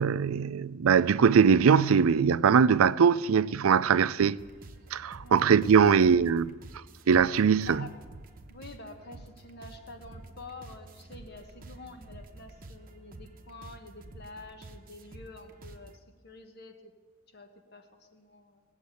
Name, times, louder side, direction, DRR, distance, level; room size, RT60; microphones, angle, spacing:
voice 1, 0.0-4.4 4.9-6.5 7.1-7.8, right 6 dB, 90° right, 0.4 m, -22 dB
sound 1, 4.4-16.0, right 2 dB, 45° right, 0.9 m, -49 dB
voice 2, 5.2-6.1 7.7-8.0 8.5-16.9 17.3-18.6, left 3 dB, 50° left, 1.3 m, -48 dB
19.0 x 7.3 x 8.3 m
head